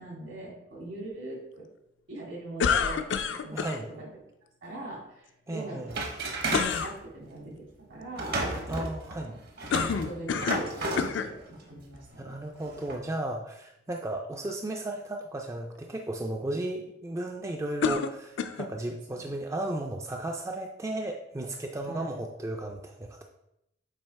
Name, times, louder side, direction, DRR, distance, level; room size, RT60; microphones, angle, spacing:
voice 1, 0.0-1.7 2.1-3.7 4.0-4.1 4.6-5.9 6.2-8.4 10.0-12.3 19.2-19.3 21.8-22.2, right 2 dB, 75° right, -3 dB, 2.2 m, -42 dB
sound 1, 2.6-3.8 6.5-6.9 9.7-10.7 11.0-11.3 12.1-12.2 17.8-18.7, left 6 dB, 65° left, 0.4 m, -28 dB
voice 2, 3.5-3.9 5.5-6.0 8.7-9.3 12.2-23.2, right 1 dB, 15° right, 2 dB, 0.3 m, -34 dB
sound 2, 5.9-6.8 8.1-11.1 11.8-12.0 12.6-13.0, right 2 dB, 50° right, 0.9 m, -32 dB
7.4 x 2.8 x 4.6 m, 0.83 s
head